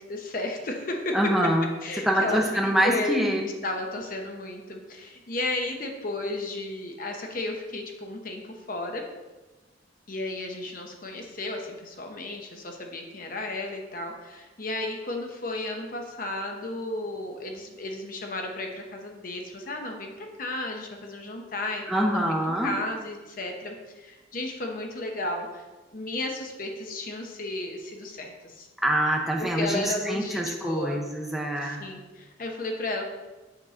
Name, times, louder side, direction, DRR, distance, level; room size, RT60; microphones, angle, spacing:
voice 1, 0.0-1.3 1.8-2.4 2.8-3.2 3.4-9.0 10.1-25.6 25.9-28.7 29.4-31.0 31.6-33.0, left 2 dB, 45° left, 2 dB, 0.8 m, -33 dB
voice 2, 1.1-1.7 2.0-3.5 21.9-22.7 28.8-31.8, equal, ahead, 0 dB, 0.6 m, -25 dB
6.7 x 3.7 x 5.7 m, 1.2 s
head